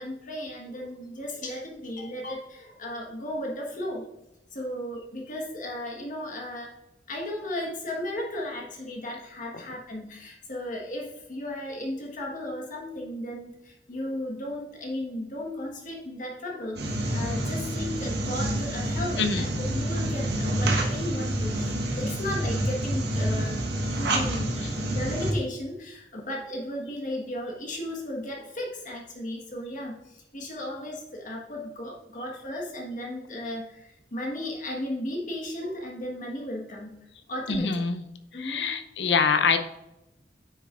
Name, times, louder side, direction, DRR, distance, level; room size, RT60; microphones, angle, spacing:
voice 1, 0.0-4.1 4.5-6.7 7.1-23.6 24.0-24.6 24.9-37.0 37.3-37.8 38.3-38.7, left 1 dB, 45° left, -1 dB, 1.4 m, -35 dB
sound 1, 16.8-25.3, right 1 dB, 65° right, 1.3 m, -28 dB
voice 2, 19.2-19.5 37.5-38.0 38.4-39.6, left 5 dB, 70° left, 8 dB, 0.7 m, -24 dB
8.9 x 6.6 x 2.5 m, 0.92 s
head